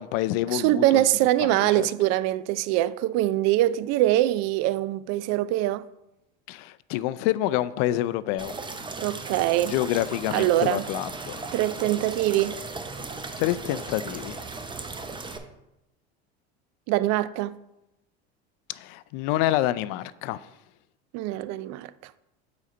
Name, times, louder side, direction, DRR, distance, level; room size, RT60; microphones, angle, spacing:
voice 1, 0.0-1.0 1.4-1.9 6.5-8.6 9.7-11.4 13.4-14.4 18.7-20.4, left 14 dB, 60° left, 0.4 m, -27 dB
voice 2, 0.5-5.9 9.0-9.8 10.3-10.8 11.5-12.6 16.9-17.6 21.1-22.1, right 15 dB, 55° right, 0.4 m, -23 dB
sound 1, 8.4-15.4, right 3 dB, 15° right, 0.7 m, -37 dB
8.2 x 4.0 x 4.3 m
hypercardioid pair, 90°, 33 cm